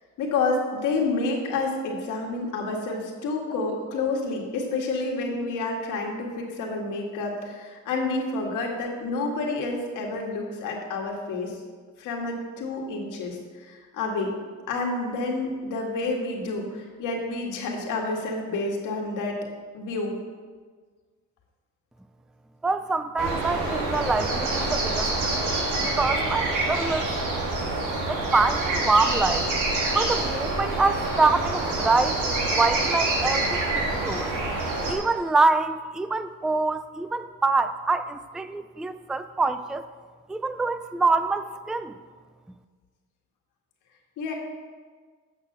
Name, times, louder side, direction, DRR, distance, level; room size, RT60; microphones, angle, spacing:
voice 1, 0.2-11.6 12.0-14.3 14.7-19.4 19.7-20.1 44.2-44.3, left 3 dB, 90° left, 1 dB, 1.8 m, -29 dB
voice 2, 22.6-25.4 25.8-27.1 28.1-29.5 29.9-32.2 32.5-34.3 34.9-39.8 40.3-42.0, right 3 dB, ahead, 12 dB, 0.3 m, -25 dB
sound 1, 23.2-34.9, right 2 dB, 80° right, 2.3 m, -26 dB
8.3 x 6.2 x 6.6 m, 1.5 s
cardioid pair, 90°, 30 cm